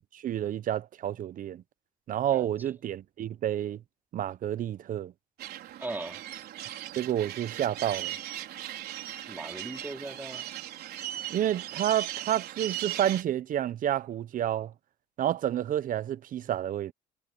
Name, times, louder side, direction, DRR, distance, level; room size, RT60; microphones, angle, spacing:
voice 1, 0.0-1.6 2.1-3.8 4.1-5.1 7.0-8.2 11.3-14.7 15.2-16.9, right 11 dB, 55° right, 0.9 m, -29 dB
voice 2, 2.3-2.7 5.8-6.2 9.3-10.5, right 2 dB, 10° right, 3.7 m, -39 dB
sound 1, 5.4-13.2, right 12 dB, 70° right, 4.2 m, -38 dB
cardioid pair, 110°, 17 cm